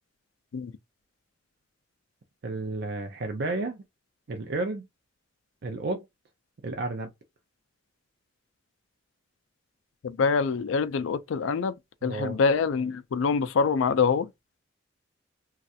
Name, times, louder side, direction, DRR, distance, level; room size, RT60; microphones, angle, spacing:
voice 1, 2.4-3.8 4.3-4.8 5.6-6.0 6.6-7.1 12.0-12.4, right 2 dB, 55° right, 0.5 m, -32 dB
voice 2, 10.0-11.7 12.0-14.3, left 5 dB, 75° left, 0.4 m, -25 dB
3.1 x 2.3 x 2.7 m
head